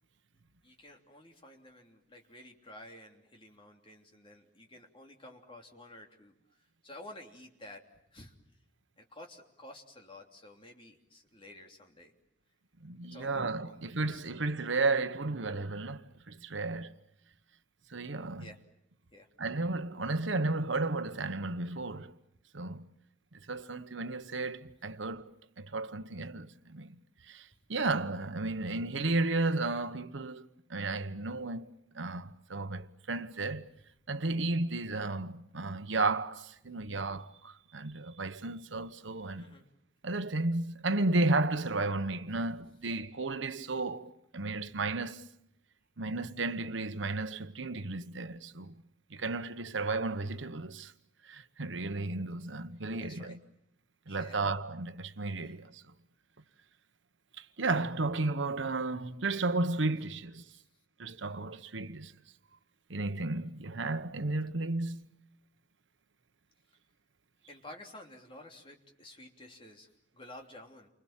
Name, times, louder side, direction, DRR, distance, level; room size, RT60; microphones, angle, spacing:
voice 1, 0.6-8.3 9.0-12.1 13.1-14.2 18.4-18.6 19.1-19.3 39.3-39.6 42.3-42.4 53.0-53.4 54.1-54.4 55.3-55.6 60.5-60.6 67.5-70.9, left 1 dB, 25° left, 3.1 m, -52 dB
voice 2, 12.8-16.9 17.9-18.5 19.4-22.1 22.5-22.8 23.5-25.3 25.6-26.9 27.2-30.4 30.7-33.7 34.1-39.5 40.0-45.3 46.0-48.8 49.1-50.9 51.2-53.4 54.1-55.8 57.4-60.4 61.0-62.1 62.9-65.0, right 3 dB, 75° right, 1.1 m, -33 dB
29.5 x 25.5 x 7.4 m
head